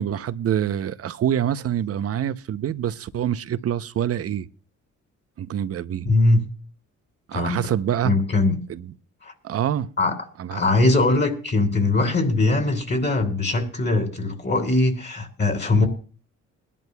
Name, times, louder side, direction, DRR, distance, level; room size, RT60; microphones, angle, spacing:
voice 1, 0.0-4.5 5.4-6.1 7.3-8.1 8.7-8.8 9.4-9.9 10.4-10.6, right 10 dB, 50° right, 0.7 m, -25 dB
voice 2, 6.0-6.4 7.3-7.7 8.0-8.6 9.2-9.3 10.0-15.9, left 2 dB, 35° left, 3.1 m, -21 dB
22.0 x 11.0 x 2.3 m
cardioid pair, 90°, 30 cm